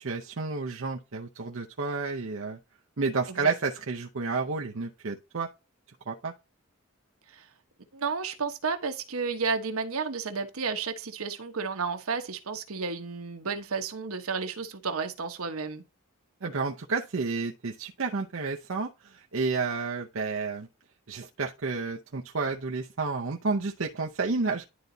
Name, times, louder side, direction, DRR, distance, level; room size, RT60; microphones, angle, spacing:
voice 1, 0.0-2.6 3.0-5.5 6.1-6.3 16.4-20.7 21.1-24.7, right 4 dB, 70° right, 0.7 m, -31 dB
voice 2, 7.9-15.8, right 5 dB, 85° right, 1.1 m, -32 dB
11.0 x 3.9 x 2.7 m
head